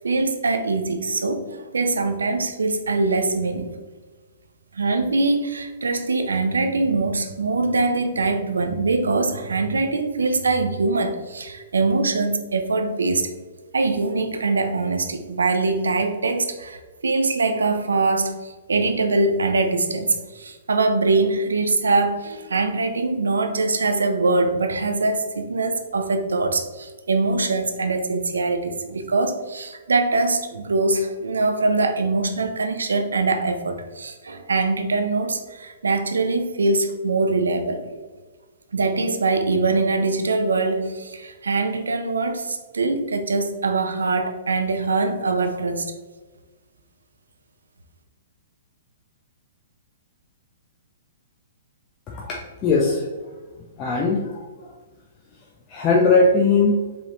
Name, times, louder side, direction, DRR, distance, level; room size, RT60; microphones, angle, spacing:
voice 1, 0.0-3.8 4.7-13.3 13.7-37.8 38.7-45.9, right 3 dB, 90° right, 6 dB, 0.6 m, -23 dB
voice 2, 52.1-53.1 53.8-54.7 55.7-56.8, left 3 dB, 30° left, -3 dB, 0.7 m, -20 dB
5.1 x 3.5 x 3.0 m, 1.3 s
hypercardioid pair, 130°, 0 cm